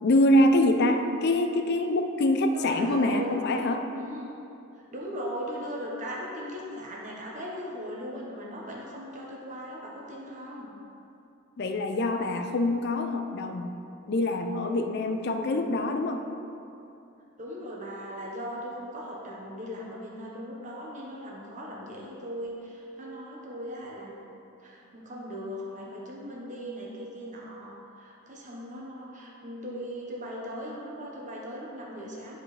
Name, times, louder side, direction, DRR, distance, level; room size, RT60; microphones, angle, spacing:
voice 1, 0.0-3.8 11.6-13.8 14.1-16.2, left 1 dB, 50° left, 6 dB, 0.4 m, -25 dB
voice 2, 2.5-4.3 4.9-10.7 17.4-24.2 24.6-32.4, equal, 35° right, -3 dB, 1.1 m, -38 dB
10.5 x 4.9 x 3.3 m, 2.8 s
head